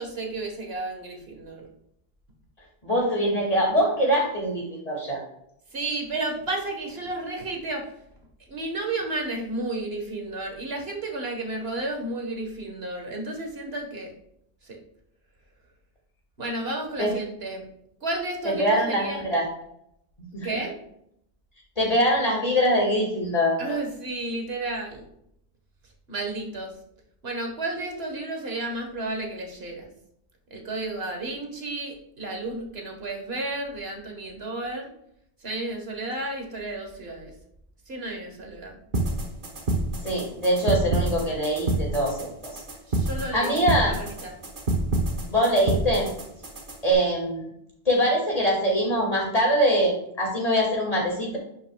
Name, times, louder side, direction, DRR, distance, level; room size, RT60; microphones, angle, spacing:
voice 1, 0.0-1.7 5.7-7.9 8.4-14.1 14.6-14.8 16.4-17.7 18.0-19.2 20.4-20.8 23.6-25.1 26.1-26.8 27.2-29.9 30.5-34.9 35.4-37.3 37.9-38.8 42.9-43.6 43.9-44.4, right 2 dB, 75° right, 2 dB, 1.8 m, -32 dB
voice 2, 2.8-5.2 17.0-17.1 18.4-19.4 20.3-20.5 21.8-23.8 40.0-42.6 43.3-43.9 45.3-46.1 46.8-47.4 47.9-51.4, equal, 35° left, -3 dB, 2.5 m, -23 dB
sound 1, 38.9-46.9, right 2 dB, 55° right, 1.5 m, -28 dB
10.5 x 6.5 x 2.4 m, 0.75 s
omnidirectional pair, 1.0 m